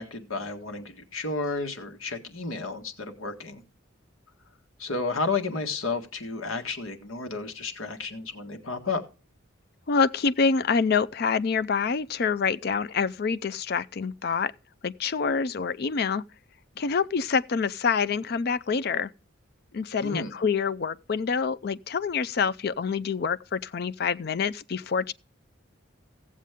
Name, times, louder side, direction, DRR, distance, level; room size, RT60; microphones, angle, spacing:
voice 1, 0.0-3.6 4.8-9.0 20.0-20.3, left 3 dB, 85° left, 1.7 m, -32 dB
voice 2, 9.9-14.5 14.8-16.2 16.8-19.1 19.7-25.1, left 5 dB, 50° left, 0.4 m, -26 dB
16.5 x 7.5 x 3.6 m
head